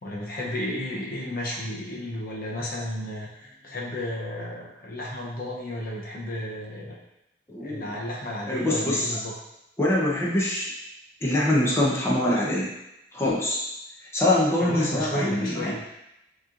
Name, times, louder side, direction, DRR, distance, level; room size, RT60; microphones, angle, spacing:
voice 1, 0.0-7.0 7.6-9.3 14.6-15.8, left 1 dB, 55° left, -3 dB, 0.8 m, -33 dB
voice 2, 7.5-7.9 8.5-9.2 9.8-10.7 11.2-12.7 13.1-13.6 14.1-15.8, left 1 dB, 15° left, -5 dB, 0.8 m, -24 dB
6.2 x 3.0 x 2.5 m, 0.85 s
head